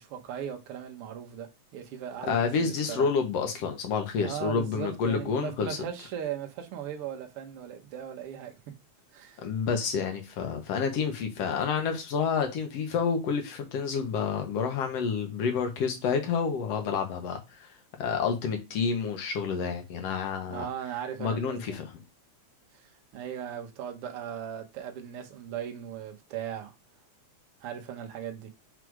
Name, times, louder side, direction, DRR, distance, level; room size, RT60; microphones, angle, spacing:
voice 1, 0.0-3.1 4.2-8.6 9.1-9.4 20.5-21.6 22.7-26.7 27.6-28.5, right 9 dB, 60° right, 1.8 m, -38 dB
voice 2, 2.2-5.8 9.4-17.7 18.0-20.7 21.2-21.8, left 6 dB, 60° left, 2.3 m, -29 dB
6.3 x 3.3 x 4.7 m
omnidirectional pair, 3.4 m